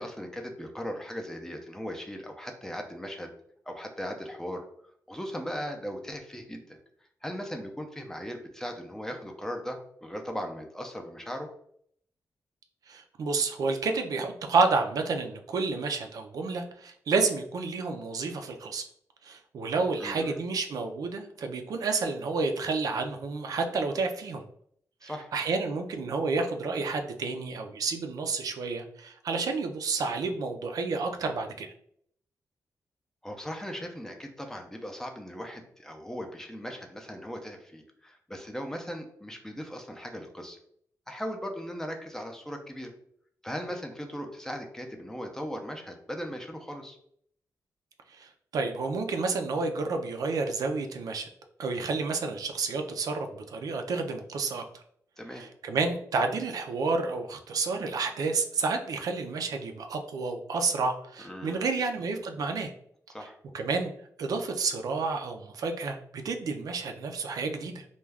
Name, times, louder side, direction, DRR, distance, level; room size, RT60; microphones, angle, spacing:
voice 1, 0.0-3.3 3.7-4.7 5.1-6.8 7.2-11.5 20.0-20.4 25.0-25.3 33.2-40.6 41.1-42.9 43.4-47.0 55.2-55.4 61.2-61.7 63.1-63.4, equal, 5° left, 3 dB, 0.4 m, -38 dB
voice 2, 12.9-18.8 19.2-24.4 25.0-31.7 48.1-51.3 51.6-54.8 55.4-62.7 63.5-63.9 64.2-67.8, right 4 dB, 70° right, 5 dB, 0.3 m, -30 dB
2.3 x 2.2 x 3.3 m, 0.66 s
cardioid pair, 100°, 6 cm